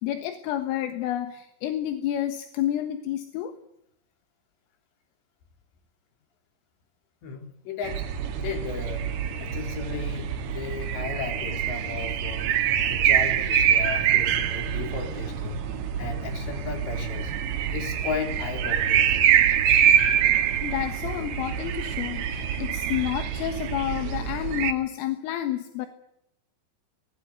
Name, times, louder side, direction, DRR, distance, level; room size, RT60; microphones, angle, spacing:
voice 1, 0.0-3.6 20.6-25.9, left 12 dB, 80° left, 8 dB, 3.9 m, -30 dB
voice 2, 7.2-8.0 8.3-9.1 9.4-12.5 12.9-15.6 16.0-17.3 17.7-19.1, left 5 dB, 60° left, 5 dB, 5.7 m, -35 dB
sound 1, 7.8-24.7, right 9 dB, 60° right, 3.3 m, -25 dB
24.0 x 20.5 x 8.3 m, 0.81 s
omnidirectional pair, 5.9 m